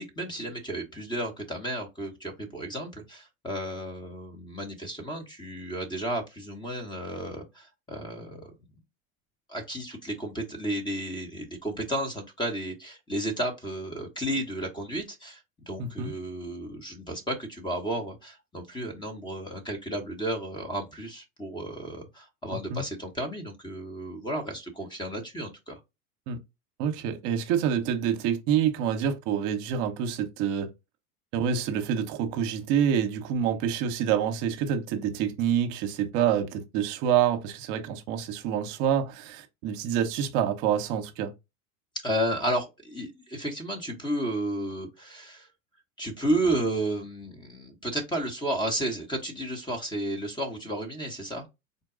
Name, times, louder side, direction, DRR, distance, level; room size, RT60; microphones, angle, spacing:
voice 1, 0.0-8.5 9.5-25.8 42.0-45.5 46.0-51.5, right 1 dB, 10° left, 1.1 m, -32 dB
voice 2, 15.8-16.1 22.7-22.8 26.3-26.4 26.8-30.7 31.3-41.3, right 8 dB, 55° right, 1.0 m, -27 dB
4.0 x 2.2 x 3.8 m
hypercardioid pair, 100°, 43 cm